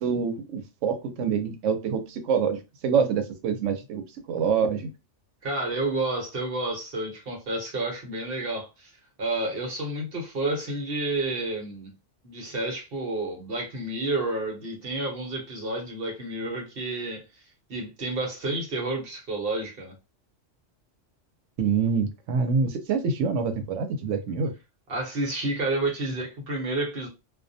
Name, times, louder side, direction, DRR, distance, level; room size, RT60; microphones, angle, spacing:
voice 1, 0.0-4.9 21.6-24.5, right 6 dB, 80° right, 0.9 m, -26 dB
voice 2, 5.4-8.9 9.2-11.9 12.2-17.2 17.7-19.9 24.9-27.1, right 2 dB, 55° right, 1.0 m, -30 dB
2.3 x 2.2 x 2.6 m
omnidirectional pair, 1.2 m